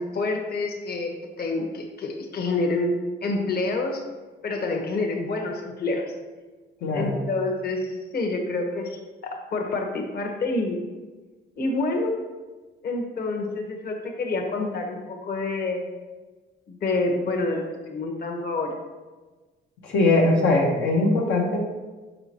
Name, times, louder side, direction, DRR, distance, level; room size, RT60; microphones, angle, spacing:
voice 1, 0.0-2.9 3.2-4.0 4.4-6.1 6.9-9.0 9.5-10.8 11.6-12.2 12.8-15.8 16.7-18.8, left 2 dB, 50° left, 2 dB, 1.1 m, -27 dB
voice 2, 6.8-7.2 19.8-21.6, left 2 dB, 75° left, -2 dB, 0.9 m, -21 dB
6.7 x 5.1 x 2.9 m, 1.3 s
cardioid pair, 90°, 20 cm